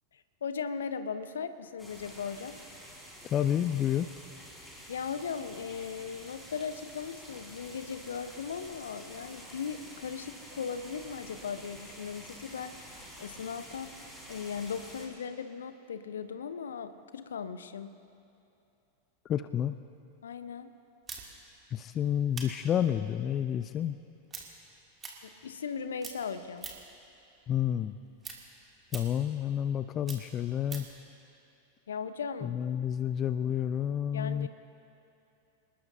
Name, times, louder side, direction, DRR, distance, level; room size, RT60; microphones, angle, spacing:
voice 1, 0.1-2.6 4.9-17.9 20.2-20.7 25.2-26.7 31.9-32.5 34.1-34.5, left 6 dB, 65° left, 11 dB, 0.8 m, -38 dB
sound 1, 1.8-15.1, equal, 5° left, 4.3 m, -49 dB
voice 2, 3.3-4.1 19.2-19.8 21.7-24.0 27.5-28.0 28.9-30.9 32.4-34.5, left 10 dB, 30° left, 12 dB, 0.4 m, -30 dB
sound 2, 21.1-25.7 26.0-27.0 27.4-31.0, right 5 dB, 20° right, 2.4 m, -45 dB
27.5 x 20.0 x 2.7 m, 2.8 s
figure-of-eight pair, 90°, 0 cm